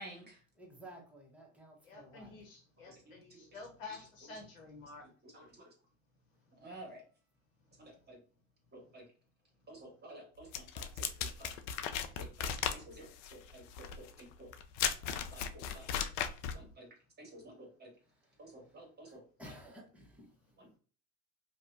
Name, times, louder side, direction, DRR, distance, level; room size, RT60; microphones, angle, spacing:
voice 1, 0.0-0.4 2.9-3.4 5.2-5.7 6.5-7.0 7.8-8.2 8.7-9.0 9.7-11.5 12.1-14.5 15.1-15.9 16.5-16.9 17.2-17.9 18.4-19.2 20.6-20.8, right 1 dB, 25° right, -1 dB, 1.4 m, -52 dB
voice 2, 0.6-2.3 18.0-20.3, right 1 dB, 5° right, -2 dB, 1.0 m, -55 dB
voice 3, 1.8-5.1, left 4 dB, 85° left, 2 dB, 1.0 m, -50 dB
sound 1, 10.5-16.6, left 8 dB, 65° left, 0.5 m, -37 dB
2.6 x 2.3 x 2.4 m, 0.39 s
hypercardioid pair, 80°, 39 cm